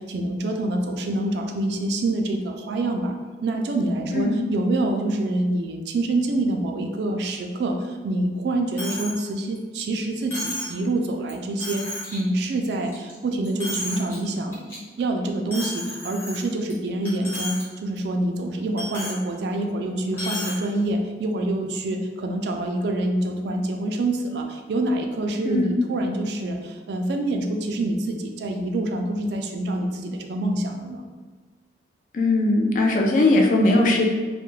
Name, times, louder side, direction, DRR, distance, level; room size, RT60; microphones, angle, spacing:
voice 1, 0.0-3.1 3.4-11.9 12.1-31.1, right 2 dB, 65° right, 4 dB, 0.3 m, -26 dB
Coin (dropping), 8.8-9.2 9.6-9.7 10.3-10.8 11.3-11.4 11.6-12.2 12.6-13.1 13.4-14.2 14.5-14.8 15.5-16.7 17.1-17.6 18.0-18.1 18.8-19.2 20.1-20.6, left 1 dB, 10° left, 0.7 m, -33 dB
voice 2, 25.4-25.8 32.1-34.0, left 2 dB, 45° left, 0 dB, 0.3 m, -19 dB
2.3 x 2.1 x 3.0 m, 1.4 s
head